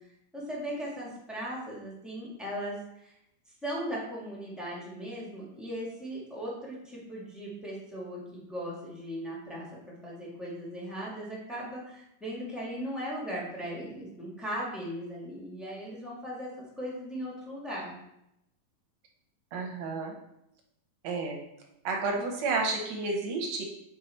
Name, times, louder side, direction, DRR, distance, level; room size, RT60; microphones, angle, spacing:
voice 1, 0.3-3.1 3.5-9.7 10.0-17.9, equal, ahead, -6 dB, 0.9 m, -38 dB
voice 2, 19.5-20.1 21.0-21.4 21.8-23.6, right 3 dB, 65° right, 1 dB, 1.8 m, -31 dB
8.4 x 4.5 x 4.4 m, 0.82 s
omnidirectional pair, 4.0 m